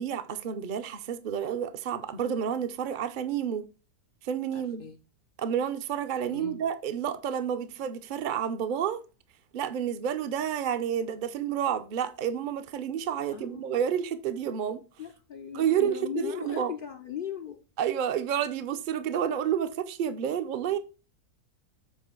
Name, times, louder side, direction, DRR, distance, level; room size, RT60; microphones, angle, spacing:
voice 1, 0.0-3.7 4.2-4.9 5.4-9.0 9.5-14.8 15.5-16.7 17.8-20.8, right 8 dB, 60° right, 0.5 m, -30 dB
voice 2, 4.5-5.0 6.3-6.6 13.3-13.7 15.0-17.6, left 8 dB, 90° left, 0.4 m, -38 dB
7.5 x 3.1 x 5.9 m
omnidirectional pair, 1.7 m